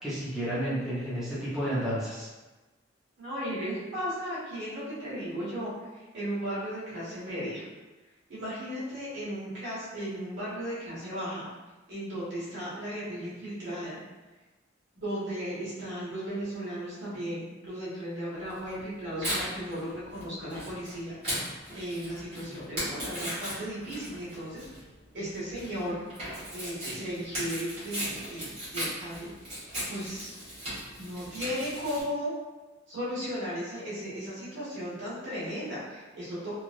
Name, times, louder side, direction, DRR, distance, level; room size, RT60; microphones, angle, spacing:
voice 1, 0.0-2.3, right 1 dB, 5° right, -12 dB, 0.7 m, -31 dB
voice 2, 3.2-7.7 8.3-11.4 11.9-14.0 14.9-21.2 21.7-24.7 25.1-26.0 26.5-29.3 29.9-30.4 31.0-32.3 32.9-36.5, equal, 65° right, -9 dB, 1.4 m, -35 dB
Tearing, 18.5-32.0, equal, 30° right, 1.4 m, -37 dB
3.1 x 2.4 x 2.5 m, 1.2 s
head